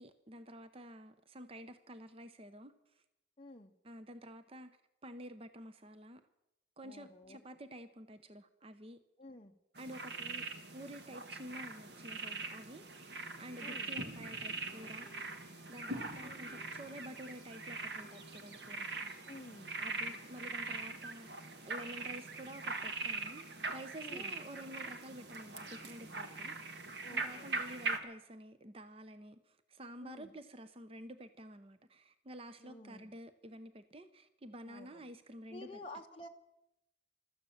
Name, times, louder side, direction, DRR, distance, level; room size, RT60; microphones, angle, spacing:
voice 1, 0.0-2.7 3.8-4.7 5.0-6.2 6.8-9.0 9.8-10.4 10.7-15.1 15.7-18.9 19.8-26.8 27.1-35.7, right 1 dB, 30° right, 11 dB, 0.7 m, -50 dB
voice 2, 3.4-3.7 6.8-7.4 9.2-9.6 13.6-13.9 15.8-16.4 19.3-19.8 24.0-24.4 27.0-27.6 30.0-30.3 32.6-33.1 34.7-35.0 35.5-36.3, left 2 dB, 30° left, 2 dB, 0.6 m, -51 dB
sound 1, 9.8-28.0, right 3 dB, 60° right, 1.5 m, -42 dB
sound 2, 12.4-12.5 13.5-23.5, equal, 5° left, 3.3 m, -65 dB
14.5 x 13.5 x 7.1 m, 0.87 s
head